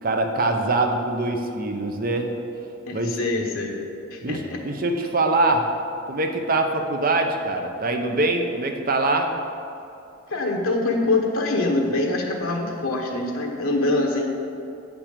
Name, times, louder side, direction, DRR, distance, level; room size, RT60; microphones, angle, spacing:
voice 1, 0.0-2.3 2.9-3.2 4.2-5.7 6.1-9.3, right 2 dB, 45° right, 4 dB, 0.7 m, -23 dB
voice 2, 2.9-3.8 4.1-4.6 10.3-14.3, left 2 dB, 80° left, 1 dB, 1.2 m, -24 dB
8.2 x 6.0 x 6.7 m, 2.7 s
head